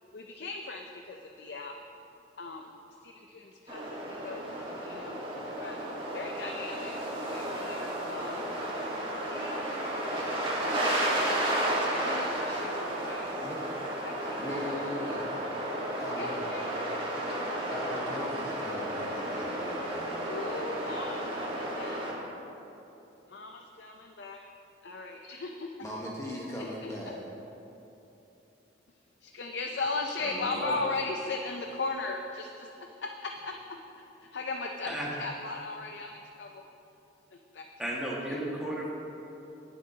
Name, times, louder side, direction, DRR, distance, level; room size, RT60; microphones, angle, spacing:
voice 1, 0.1-1.7 2.4-4.4 4.8-5.8 6.1-6.9 7.3-8.4 9.3-13.5 14.0-14.5 16.2-16.7 20.3-22.0 23.3-24.4 24.8-25.7 26.6-26.9 29.2-36.6 37.3-37.6 38.3-38.4, left 3 dB, 65° left, 2 dB, 0.5 m, -38 dB
sound 1, 3.7-22.1, right 1 dB, 30° right, 1.6 m, -33 dB
voice 2, 14.4-15.3 16.0-16.4 17.6-20.0 25.8-27.2, left 1 dB, 15° left, -4 dB, 1.1 m, -39 dB
voice 3, 30.2-30.7 34.9-35.1 37.8-38.9, right 1 dB, 5° right, -6 dB, 1.7 m, -34 dB
18.0 x 7.4 x 2.8 m, 3.0 s
head